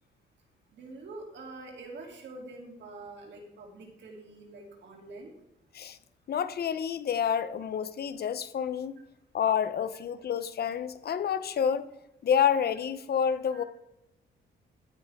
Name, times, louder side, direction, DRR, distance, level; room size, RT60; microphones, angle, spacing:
voice 1, 0.7-5.3 13.5-13.7, right 2 dB, 65° right, 3.2 m, -45 dB
voice 2, 6.3-9.0 9.3-11.9 12.2-13.6, left 8 dB, 55° left, 0.9 m, -28 dB
13.5 x 9.5 x 3.7 m
cardioid pair, 90°, 20 cm